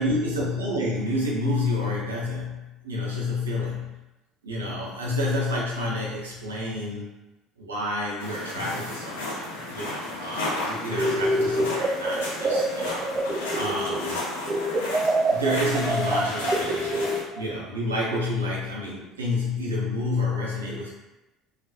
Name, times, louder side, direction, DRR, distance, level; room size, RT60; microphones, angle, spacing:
voice 1, 0.0-4.0 4.4-7.1 7.6-9.5 9.7-13.1 13.5-14.3 15.3-17.0 17.3-20.9, left 1 dB, 80° right, -4 dB, 0.6 m, -29 dB
sound 1, 8.2-17.2, left 2 dB, 75° left, 0.7 m, -33 dB
sound 2, 10.9-14.2 14.5-17.5, right 1 dB, 25° right, 0.3 m, -26 dB
2.4 x 2.1 x 2.7 m, 1.0 s
figure-of-eight pair, 60°, 0 cm